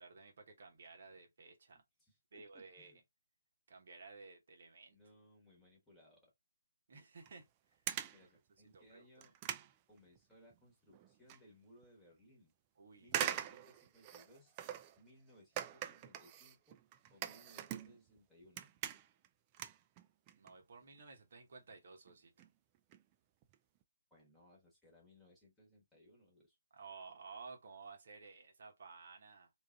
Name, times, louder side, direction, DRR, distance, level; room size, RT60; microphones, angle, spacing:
voice 1, 0.0-1.8 2.3-2.9 3.7-5.0 6.9-7.5 8.7-9.3 12.8-13.1 20.4-22.5 26.7-29.5, right 4 dB, 50° right, 0.9 m, -55 dB
voice 2, 1.7-3.0 4.9-6.3 8.1-9.3 9.9-12.5 13.0-14.5 15.0-16.8 17.1-18.7 24.1-26.6, equal, 5° left, 1.3 m, -65 dB
sound 1, 7.2-7.4 7.9-8.2 8.7-8.8 9.2-10.6 10.9-11.4 11.8-11.9 13.1-15.0 15.6-18.2 18.4-19.3 19.5-20.5 20.8-21.0 21.7-21.8 22.1-22.2 22.4-22.5 22.7-23.0 23.4-23.5 23.8-23.9, right 11 dB, 25° right, 0.3 m, -43 dB
3.5 x 2.5 x 2.2 m
figure-of-eight pair, 140°, 0 cm